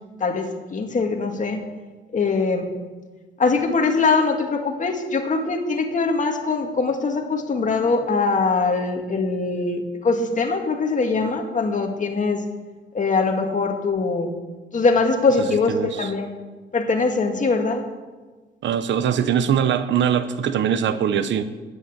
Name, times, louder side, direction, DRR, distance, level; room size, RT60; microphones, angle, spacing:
voice 1, 0.2-1.6 2.1-2.7 3.4-12.4 12.9-14.4 14.7-16.3 16.7-17.8, left 4 dB, 40° left, 4 dB, 2.1 m, -22 dB
voice 2, 15.7-16.1 18.6-21.4, right 8 dB, 70° right, 12 dB, 0.9 m, -22 dB
11.5 x 9.6 x 8.6 m, 1.3 s
cardioid pair, 90°, 20 cm